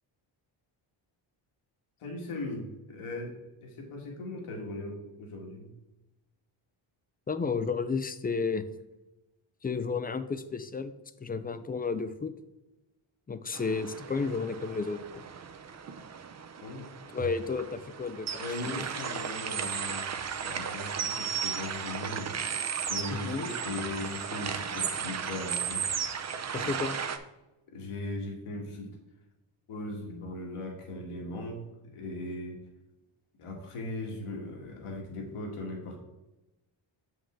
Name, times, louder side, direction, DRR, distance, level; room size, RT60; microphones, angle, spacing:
voice 1, 2.0-5.7 16.6-16.9 18.4-20.1 20.4-22.3 22.8-25.8 27.7-28.9 29.7-31.6 31.9-32.6 33.4-36.0, left 2 dB, 80° left, 1 dB, 1.9 m, -38 dB
voice 2, 7.3-8.6 9.6-10.9 11.2-12.3 13.3-15.2 17.1-18.3 18.8-18.9 23.1-23.5 26.5-27.0, left 4 dB, 20° left, 12 dB, 0.3 m, -32 dB
sound 1, 13.5-27.2, right 7 dB, 35° right, 0.6 m, -35 dB
7.2 x 5.4 x 3.7 m, 1.0 s
cardioid pair, 100°, 50 cm